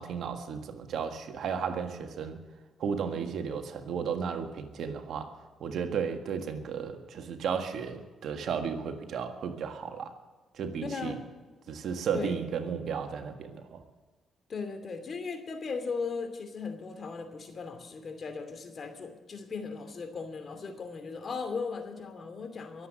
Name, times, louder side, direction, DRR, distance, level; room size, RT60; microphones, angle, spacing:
voice 1, 0.0-2.4 2.8-5.3 5.6-10.1 10.5-11.2 11.7-13.8, right 6 dB, 70° right, 6 dB, 1.7 m, -34 dB
voice 2, 10.8-11.2 12.1-12.4 14.5-22.9, left 4 dB, 50° left, 7 dB, 2.7 m, -37 dB
23.0 x 8.1 x 6.4 m, 1.3 s
supercardioid pair, 60°, 0 cm